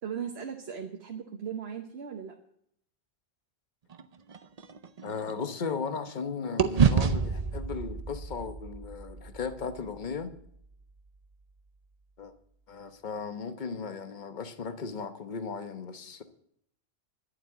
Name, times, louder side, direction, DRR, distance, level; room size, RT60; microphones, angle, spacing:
voice 1, 0.0-2.3, right 7 dB, 70° right, 1.3 m, -37 dB
sound 1, 3.9-6.2 6.6-10.8, right 6 dB, 45° right, 0.6 m, -30 dB
voice 2, 5.0-10.3 12.2-12.3 12.7-16.2, left 5 dB, 45° left, 1.1 m, -36 dB
11.5 x 7.5 x 9.1 m
omnidirectional pair, 1.1 m